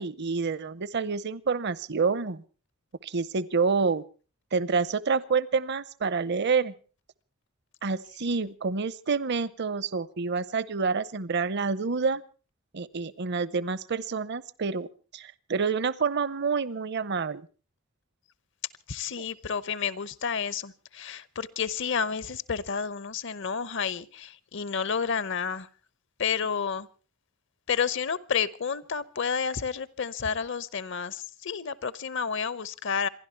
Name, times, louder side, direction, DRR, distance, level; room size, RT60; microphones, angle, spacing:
voice 1, 0.0-2.4 3.0-4.0 4.5-6.7 7.8-12.2 12.7-14.9 15.1-17.5, right 5 dB, 55° right, 19 dB, 0.7 m, -28 dB
voice 2, 18.9-25.7 26.2-26.9 27.7-33.1, left 6 dB, 65° left, 19 dB, 0.8 m, -30 dB
27.0 x 11.5 x 4.5 m, 0.37 s
head